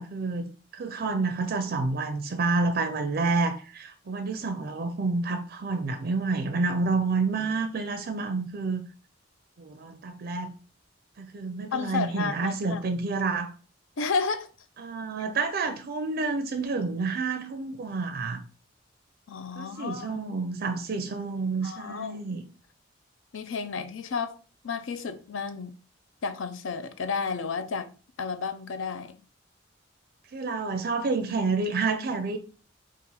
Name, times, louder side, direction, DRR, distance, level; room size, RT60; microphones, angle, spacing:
voice 1, 0.0-8.8 9.6-10.5 11.2-13.5 14.8-18.4 19.6-22.4 30.3-32.4, right 3 dB, 50° right, 0.4 m, -29 dB
voice 2, 11.7-12.8 14.0-14.5 19.3-20.2 21.6-22.2 23.3-24.4 24.6-25.7 26.2-27.9 28.2-29.2, left 5 dB, 75° left, 0.5 m, -32 dB
4.1 x 2.5 x 3.9 m
head